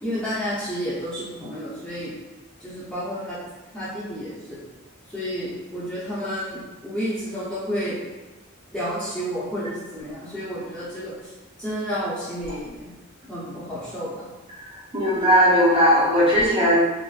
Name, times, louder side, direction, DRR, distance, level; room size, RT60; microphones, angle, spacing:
voice 1, 0.0-2.1 2.6-3.4 3.7-4.6 5.1-8.0 8.7-11.1 11.6-12.9 13.3-14.2, equal, 5° left, -11 dB, 0.8 m, -30 dB
voice 2, 14.9-16.7, equal, 25° right, -6 dB, 0.9 m, -17 dB
3.9 x 2.5 x 2.5 m, 1.1 s
head